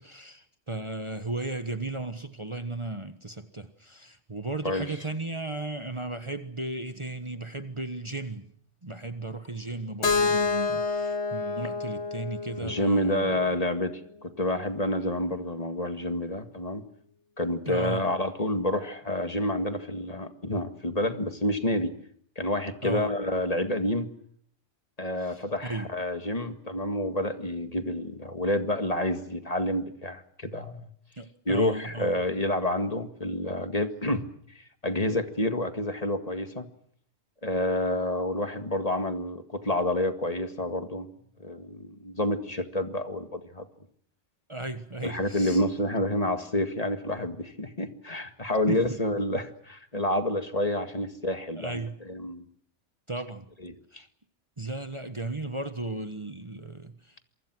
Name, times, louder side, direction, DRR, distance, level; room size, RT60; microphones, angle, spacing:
voice 1, 0.0-8.5 8.8-13.3 17.7-18.1 22.8-23.1 25.2-25.9 31.2-32.1 44.5-45.6 48.7-48.8 51.5-52.0 53.1-53.5 53.9-54.0 54.6-57.2, right 2 dB, 25° right, 1.4 m, -35 dB
Keyboard (musical), 10.0-13.9, left 4 dB, 75° left, 1.5 m, -29 dB
voice 2, 12.6-16.8 17.4-21.9 22.4-24.1 25.0-30.9 31.5-34.3 34.6-36.7 37.4-41.1 41.4-43.7 45.0-51.8 52.1-52.4 53.6-54.0, left 1 dB, 35° left, 2.1 m, -29 dB
27.5 x 24.5 x 6.2 m
omnidirectional pair, 1.2 m